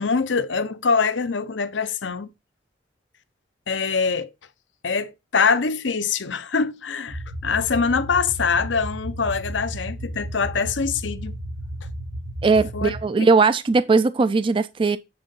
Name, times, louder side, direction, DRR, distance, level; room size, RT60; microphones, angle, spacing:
voice 1, 0.0-2.3 3.7-4.3 4.8-11.3 12.7-13.3, left 5 dB, 80° left, 0.7 m, -24 dB
sound 1, 7.1-13.0, right 1 dB, 85° right, 1.7 m, -33 dB
voice 2, 12.4-15.0, right 4 dB, 30° right, 0.3 m, -19 dB
8.6 x 3.8 x 5.4 m
head